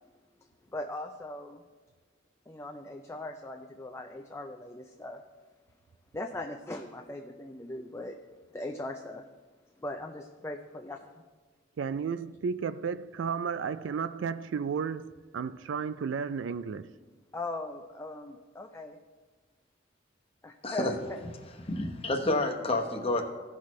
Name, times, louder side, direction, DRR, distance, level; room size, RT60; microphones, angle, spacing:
voice 1, 0.7-1.6 2.5-5.2 6.1-8.2 8.5-9.3 9.8-11.1 17.3-19.0 20.4-21.2, left 2 dB, 15° left, 0.4 m, -39 dB
voice 2, 11.8-16.9, right 6 dB, 65° right, 0.3 m, -33 dB
voice 3, 21.7-23.2, left 2 dB, 30° left, 1.0 m, -29 dB
16.0 x 6.1 x 3.1 m
head